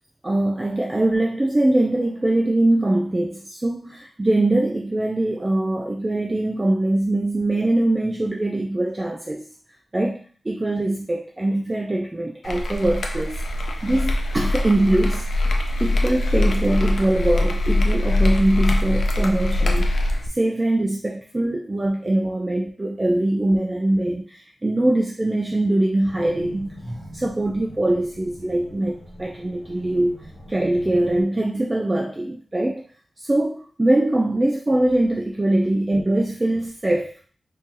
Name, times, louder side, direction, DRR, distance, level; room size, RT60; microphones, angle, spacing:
voice 1, 0.2-9.5 9.9-13.4 13.8-15.3 15.8-30.2 30.5-32.8 33.2-37.1, right 1 dB, 20° right, 0 dB, 0.3 m, -22 dB
sound 1, 12.4-20.3, left 1 dB, 70° left, 0.5 m, -22 dB
sound 2, 26.0-31.2, equal, 40° left, 1.2 m, -41 dB
2.8 x 2.7 x 3.7 m, 0.41 s
wide cardioid pair, 145°, 0 cm